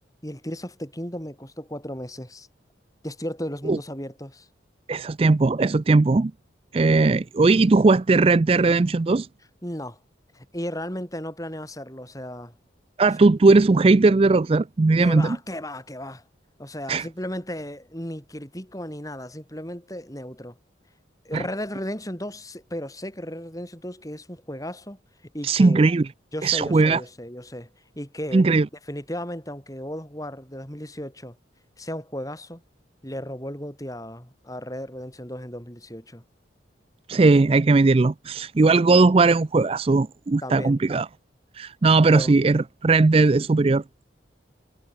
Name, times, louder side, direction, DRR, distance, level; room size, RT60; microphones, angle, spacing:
voice 1, 0.2-2.5 3.0-4.5 9.6-10.0 10.3-12.5 15.0-16.2 16.6-20.6 21.2-25.0 25.3-25.9 26.3-27.7 28.0-28.5 28.9-31.4 31.8-32.6 33.0-36.2 40.4-40.8 42.1-42.3, equal, 20° left, 7.6 m, -35 dB
voice 2, 4.9-6.3 6.7-9.3 13.0-15.4 16.9-17.1 21.3-21.4 25.4-26.1 26.4-27.0 28.3-28.7 37.1-41.1 41.6-44.1, right 3 dB, 30° right, 0.4 m, -18 dB
head